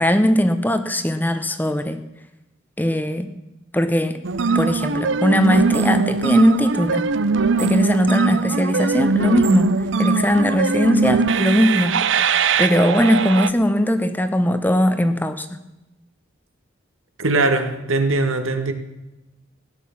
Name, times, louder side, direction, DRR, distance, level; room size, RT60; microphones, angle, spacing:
voice 1, 0.0-2.0 2.8-3.3 3.7-4.2 4.5-7.1 7.6-12.1 12.6-15.6, equal, 10° left, 9 dB, 0.8 m, -19 dB
sound 1, 4.2-13.5, right 4 dB, 65° right, 0.6 m, -21 dB
voice 2, 17.2-18.7, right 2 dB, 85° right, 7 dB, 1.7 m, -20 dB
16.5 x 10.5 x 7.2 m, 1.0 s
head